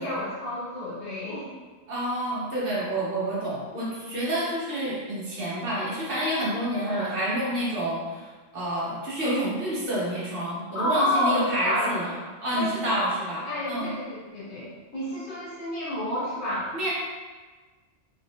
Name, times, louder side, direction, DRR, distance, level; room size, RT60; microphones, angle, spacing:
voice 1, 0.0-1.5 6.9-7.2 10.7-11.9 12.5-13.0 13.4-16.7, left 1 dB, 65° left, -7 dB, 1.3 m, -29 dB
voice 2, 1.9-12.1 12.4-13.9 16.7-16.9, right 1 dB, 50° right, -8 dB, 1.3 m, -29 dB
3.4 x 2.9 x 2.8 m, 1.4 s
omnidirectional pair, 1.2 m